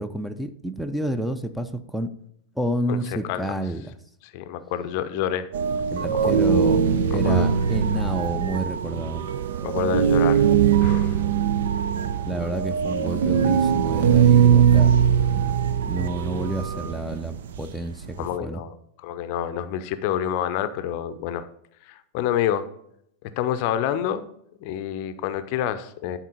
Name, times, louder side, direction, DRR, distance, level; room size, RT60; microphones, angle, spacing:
voice 1, 0.0-2.1 2.6-3.8 5.9-6.8 7.1-9.2 12.3-14.9 15.9-18.6, right 1 dB, ahead, 10 dB, 0.6 m, -29 dB
voice 2, 2.9-3.5 4.2-5.5 7.1-7.5 9.6-10.5 10.8-11.2 18.2-21.5 21.8-22.7 23.4-24.3 24.6-26.2, left 10 dB, 45° left, 12 dB, 0.6 m, -28 dB
sound 1, 5.5-18.4, right 7 dB, 60° right, 0.5 m, -21 dB
11.0 x 4.4 x 4.1 m, 0.73 s
figure-of-eight pair, 90°, 0 cm